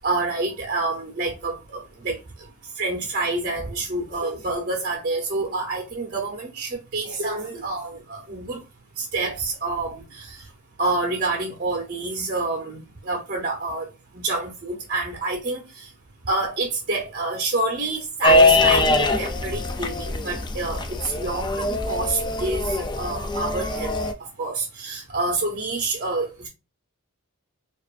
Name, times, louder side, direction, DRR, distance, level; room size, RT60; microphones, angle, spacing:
voice 1, 0.0-2.5 2.8-8.6 9.0-10.4 10.8-13.9 14.1-15.9 16.3-23.9 24.2-26.5, right 2 dB, 40° right, 0.8 m, -28 dB
sound 1, 18.2-24.1, left 2 dB, 20° left, 0.3 m, -22 dB
4.5 x 2.4 x 2.5 m
head